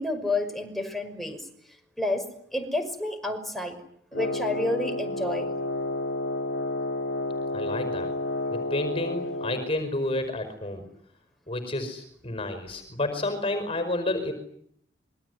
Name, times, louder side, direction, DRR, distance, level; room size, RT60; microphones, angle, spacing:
voice 1, 0.0-1.4 2.0-2.2 2.5-3.7 4.1-5.5, left 2 dB, ahead, 4 dB, 5.7 m, -29 dB
Wind instrument woodwind instrument, 4.1-9.8, left 1 dB, 80° left, 1.5 m, -30 dB
voice 2, 7.5-8.1 8.5-10.8 11.5-14.3, left 2 dB, 30° left, 9 dB, 5.1 m, -30 dB
27.0 x 23.0 x 9.6 m, 0.69 s
head